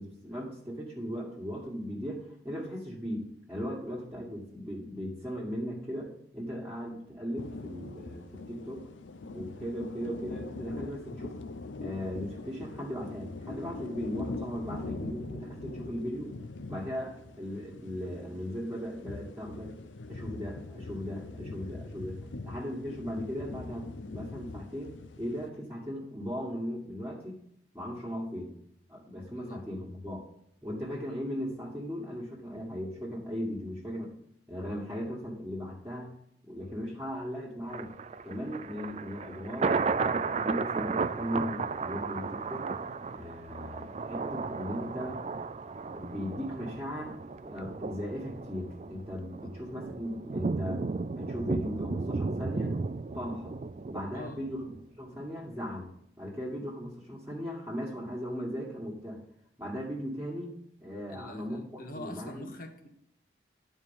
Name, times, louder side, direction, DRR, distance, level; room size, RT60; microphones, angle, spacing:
voice 1, 0.0-8.9 9.3-11.4 11.8-16.3 16.7-19.7 20.1-27.4 27.7-28.5 28.9-30.2 30.6-34.1 34.5-36.1 36.5-37.9 38.2-42.7 43.1-45.2 45.9-50.8 51.2-52.8 53.1-53.6 53.9-54.6 55.0-55.9 56.2-59.2 59.6-60.5 60.8-62.5, equal, 5° right, -7 dB, 1.8 m, -38 dB
sound 1, 7.4-25.5, left 2 dB, 85° left, 0.7 m, -42 dB
Thunder, 37.7-54.8 55.2-55.3, right 4 dB, 35° right, 0.4 m, -34 dB
voice 2, 54.1-54.5 61.1-62.9, left 1 dB, 50° left, 5 dB, 1.3 m, -44 dB
11.5 x 4.6 x 7.1 m, 0.73 s
head